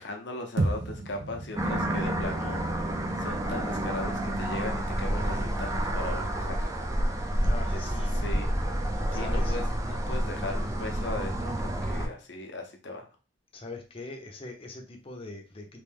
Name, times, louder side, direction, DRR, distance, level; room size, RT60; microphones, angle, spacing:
voice 1, 0.0-6.7 7.7-8.5 9.1-13.1, left 2 dB, 70° left, 3 dB, 0.8 m, -38 dB
sound 1, 0.6-4.9, right 2 dB, 80° right, 0.6 m, -35 dB
sound 2, 1.6-12.1, right 1 dB, 20° right, 0.4 m, -29 dB
voice 2, 7.4-8.2 9.1-9.5 13.5-15.8, left 2 dB, 30° left, 3 dB, 0.7 m, -41 dB
3.2 x 2.6 x 3.5 m, 0.33 s
head